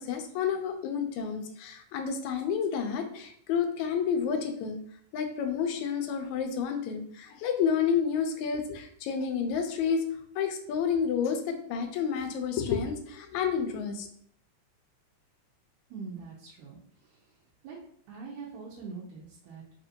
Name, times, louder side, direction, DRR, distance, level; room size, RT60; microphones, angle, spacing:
voice 1, 0.0-4.8 5.1-10.0 10.4-14.1, left 7 dB, 80° left, 5 dB, 1.9 m, -30 dB
voice 2, 15.9-17.2 17.6-17.8 18.1-19.6, right 4 dB, 90° right, -5 dB, 2.1 m, -43 dB
5.0 x 2.6 x 2.7 m, 0.63 s
omnidirectional pair, 3.4 m